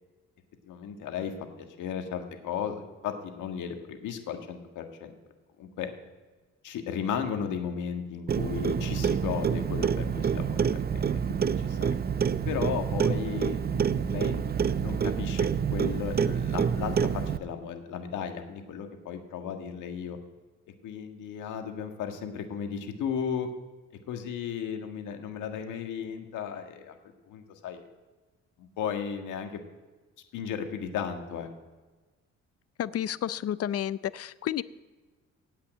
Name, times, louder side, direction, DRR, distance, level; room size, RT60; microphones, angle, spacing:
voice 1, 0.6-1.3 1.6-5.1 5.6-5.9 6.6-12.0 12.5-20.2 20.8-23.5 24.1-27.0 27.3-27.8 28.6-29.6 30.3-31.5, left 7 dB, 85° left, 5 dB, 1.7 m, -35 dB
Clock, 8.3-17.4, right 7 dB, 35° right, 0.5 m, -27 dB
voice 2, 32.8-34.6, left 10 dB, 50° left, 17 dB, 0.6 m, -31 dB
16.5 x 5.8 x 9.0 m, 1.3 s
cardioid pair, 90°, 30 cm